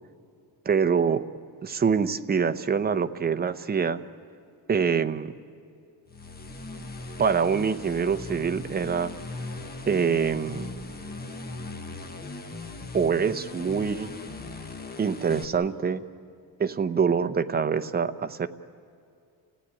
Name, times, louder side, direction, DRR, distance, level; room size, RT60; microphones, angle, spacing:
voice 1, 0.7-1.2 1.6-4.0 4.7-5.3 7.2-9.1 9.9-10.7 12.9-14.1 15.0-16.0 16.6-18.5, right 6 dB, 25° right, 9 dB, 0.7 m, -25 dB
sound 1, 6.1-15.4, left 3 dB, 25° left, 1.3 m, -39 dB
29.5 x 16.5 x 9.8 m, 2.4 s
cardioid pair, 165°, 40 cm